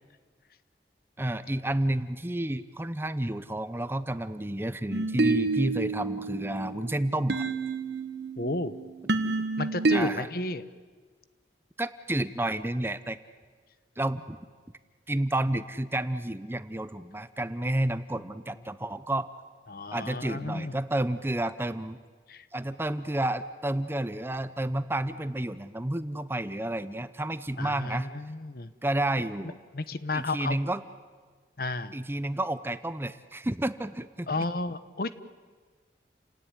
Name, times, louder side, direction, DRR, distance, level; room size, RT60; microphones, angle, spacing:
voice 1, 1.2-7.5 9.9-10.3 11.8-13.2 14.0-14.4 15.1-19.3 19.9-22.0 22.5-28.1 28.8-29.6 30.1-30.8 31.9-34.5, right 1 dB, 15° right, 13 dB, 0.7 m, -30 dB
sound 1, 4.9-10.0, right 3 dB, 75° right, 1.4 m, -29 dB
voice 2, 8.4-8.7 9.6-10.6 19.7-20.7 22.3-22.5 27.6-28.7 29.7-30.6 31.6-31.9 34.3-35.2, left 2 dB, 55° left, 13 dB, 1.0 m, -32 dB
30.0 x 17.5 x 9.9 m, 1.5 s
head